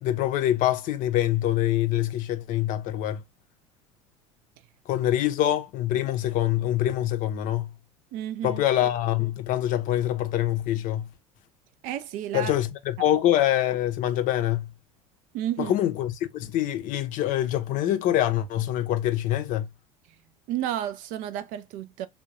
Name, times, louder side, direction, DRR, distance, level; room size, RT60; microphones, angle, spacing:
voice 1, 0.0-3.2 4.9-7.7 8.4-11.1 12.3-14.7 15.6-19.7, left 12 dB, 45° left, 0.6 m, -25 dB
voice 2, 8.1-8.6 11.8-12.5 15.3-15.7 20.5-22.1, right 11 dB, 45° right, 0.4 m, -31 dB
3.5 x 2.2 x 2.5 m
figure-of-eight pair, 70°, 19 cm